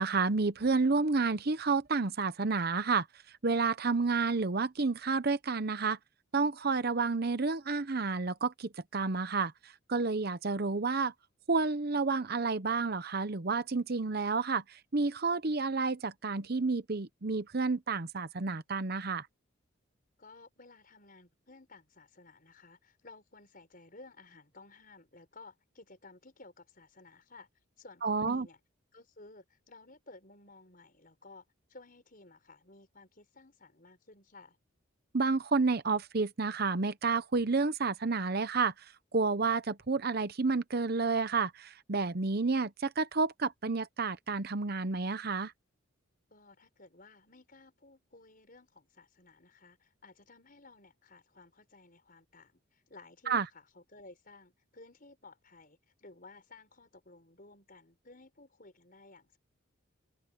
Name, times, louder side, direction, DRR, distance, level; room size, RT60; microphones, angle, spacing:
voice 1, 0.0-3.1 3.4-6.0 6.3-9.5 9.9-11.1 11.5-19.3 28.0-28.5 35.1-38.7 39.1-45.5 53.3-53.5, right 4 dB, 50° right, 0.8 m, -30 dB
voice 2, 20.2-27.5 27.8-28.6 28.9-31.4 31.7-34.6 46.3-59.4, left 3 dB, 45° left, 5.4 m, -56 dB
head